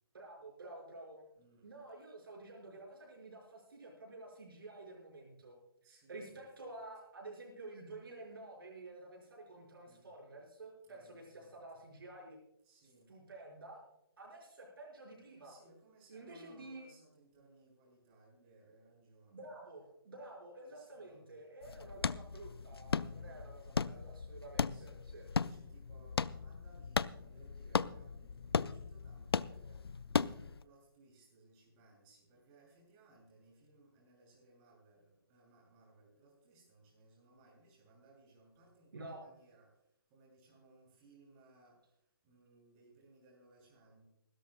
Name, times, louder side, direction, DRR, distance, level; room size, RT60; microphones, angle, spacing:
voice 1, 0.1-1.3 1.6-5.6 5.9-12.4 12.8-13.8 14.2-15.5 16.1-16.9 19.3-25.3 38.9-39.2, right 2 dB, 70° right, -1 dB, 5.8 m, -51 dB
voice 2, 1.4-1.7 5.8-6.8 9.8-10.1 10.8-11.6 12.6-13.1 15.4-19.5 20.7-21.4 22.8-23.4 24.6-29.8 30.2-39.7 40.1-41.8 42.2-44.1, right 2 dB, 30° right, -3 dB, 7.1 m, -64 dB
sound 1, 21.6-30.6, left 5 dB, 85° left, 0.5 m, -37 dB
26.0 x 13.5 x 2.3 m, 0.78 s
figure-of-eight pair, 140°, 13 cm